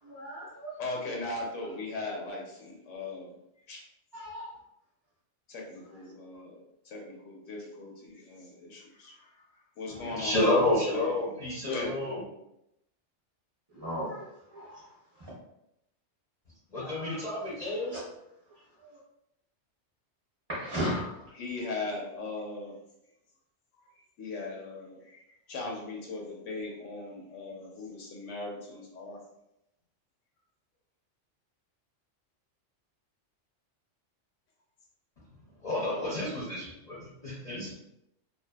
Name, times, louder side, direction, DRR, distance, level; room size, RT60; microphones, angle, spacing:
voice 1, 0.0-0.8 4.1-4.6 10.0-10.1 13.7-14.2 14.5-14.7 16.7-17.3 17.9-18.0 18.8-19.0 20.5-21.3, equal, 25° right, -10 dB, 0.7 m, -36 dB
voice 2, 0.8-3.3 3.7-3.8 5.5-9.4 9.8-12.2 21.3-22.8 24.2-25.2 25.5-29.2, left 2 dB, 80° left, -1 dB, 1.0 m, -39 dB
voice 3, 9.9-12.2 16.7-17.9 35.6-37.7, left 1 dB, 40° left, -8 dB, 0.7 m, -30 dB
2.6 x 2.3 x 2.2 m, 0.82 s
omnidirectional pair, 1.3 m